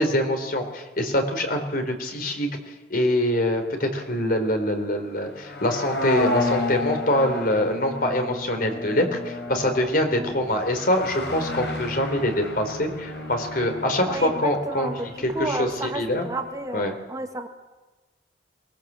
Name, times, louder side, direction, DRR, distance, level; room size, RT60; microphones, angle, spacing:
voice 1, 0.0-2.5 2.9-15.7 15.9-16.2 16.7-16.9, left 1 dB, 55° left, 5 dB, 3.6 m, -24 dB
sound 1, 5.2-16.3 16.6-16.7, left 2 dB, 75° left, 4.6 m, -31 dB
voice 2, 14.0-17.5, right 1 dB, 20° right, 5 dB, 1.5 m, -32 dB
23.0 x 20.5 x 7.5 m, 1.2 s
head